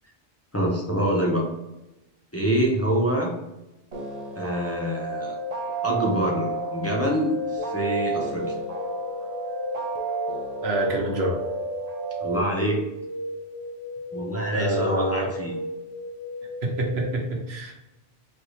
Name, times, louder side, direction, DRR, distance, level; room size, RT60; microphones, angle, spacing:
voice 1, 0.5-1.5 2.3-3.3 4.4-5.4 5.8-8.5 12.2-12.8 14.1-15.5, right 1 dB, 15° left, -3 dB, 0.8 m, -25 dB
sound 1, 3.9-12.4, right 2 dB, 45° right, 0.8 m, -31 dB
sound 2, 7.6-17.1, left 1 dB, 30° left, 0.4 m, -35 dB
voice 2, 10.6-11.4 14.5-15.3 16.6-17.7, right 1 dB, 90° right, 0 dB, 1.3 m, -26 dB
4.3 x 3.2 x 3.1 m, 0.96 s
omnidirectional pair, 1.0 m